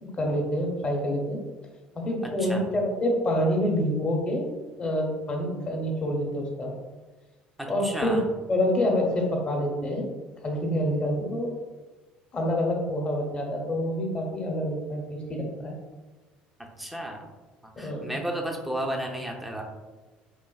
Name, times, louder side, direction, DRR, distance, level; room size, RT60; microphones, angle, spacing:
voice 1, 0.0-1.4 1.9-4.4 4.8-6.7 7.7-8.2 8.5-10.0 10.4-11.5 12.3-15.7 17.8-18.1, equal, 30° left, 0 dB, 1.0 m, -27 dB
voice 2, 7.6-8.2 16.6-17.2 17.8-19.6, right 1 dB, 5° right, 1 dB, 0.6 m, -33 dB
4.7 x 2.4 x 2.3 m, 1.2 s
supercardioid pair, 90°, 3 cm